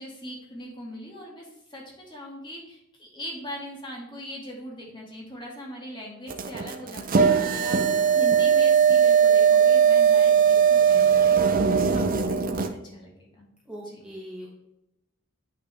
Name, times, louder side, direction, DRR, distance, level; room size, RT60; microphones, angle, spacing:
voice 1, 0.0-13.5 13.8-14.0, equal, 25° left, -2 dB, 1.8 m, -40 dB
sound 1, 6.3-12.7, right 7 dB, 40° right, 0.6 m, -19 dB
voice 2, 13.7-14.5, equal, 5° right, -5 dB, 1.2 m, -40 dB
8.6 x 5.6 x 3.3 m, 0.85 s
head